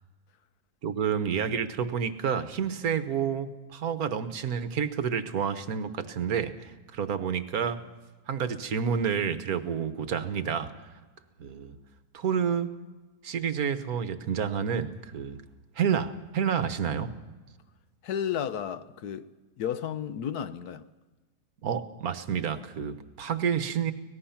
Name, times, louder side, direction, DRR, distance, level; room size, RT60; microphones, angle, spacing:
voice 1, 0.8-7.8 8.3-10.7 11.4-11.8 12.1-12.7 13.2-15.4 15.8-17.1 21.6-23.9, right 7 dB, 65° right, 1.5 m, -29 dB
voice 2, 18.0-19.3 19.6-20.9, left 9 dB, 70° left, 1.3 m, -32 dB
24.5 x 18.5 x 5.8 m
omnidirectional pair, 1.8 m